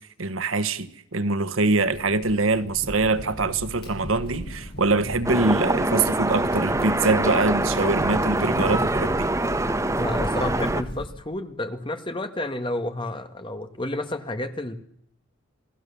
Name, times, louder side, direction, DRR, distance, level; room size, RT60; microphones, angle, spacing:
voice 1, 0.2-9.3, right 3 dB, 85° right, 1.3 m, -24 dB
Crackle, 1.8-11.1, equal, 55° left, 7.5 m, -36 dB
sound 1, 5.2-10.8, right 2 dB, 15° right, 1.0 m, -24 dB
voice 2, 10.0-14.8, left 1 dB, 25° left, 1.7 m, -30 dB
27.5 x 18.5 x 7.0 m
head